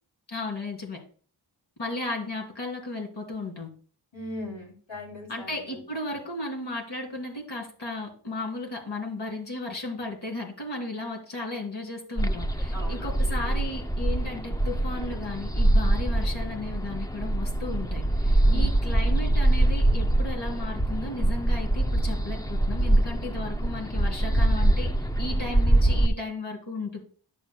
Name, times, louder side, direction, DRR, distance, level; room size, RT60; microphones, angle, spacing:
voice 1, 0.3-1.0 1.8-3.7 5.3-24.9 25.2-27.0, left 2 dB, 60° left, 1 dB, 3.1 m, -35 dB
voice 2, 4.1-5.8 6.1-6.2 12.7-13.1 18.4-18.7, left 1 dB, 80° left, 0 dB, 3.4 m, -39 dB
sound 1, 12.2-26.1, right 1 dB, 10° left, 0.5 m, -24 dB
10.5 x 7.4 x 2.3 m, 0.43 s
wide cardioid pair, 60°, 47 cm